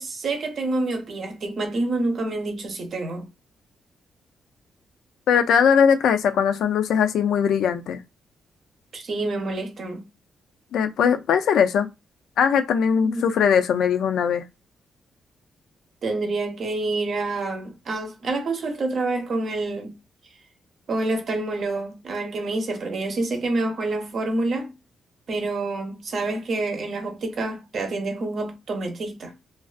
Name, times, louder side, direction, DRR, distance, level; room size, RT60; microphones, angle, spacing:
voice 1, 0.0-3.3 8.9-10.1 13.0-13.2 16.0-19.9 20.9-24.7 25.3-29.3, right 2 dB, 50° right, 0.7 m, -27 dB
voice 2, 5.3-8.0 10.7-11.9 12.4-14.4, left 7 dB, 80° left, 0.3 m, -20 dB
2.4 x 2.3 x 2.4 m
cardioid pair, 135°, 0 cm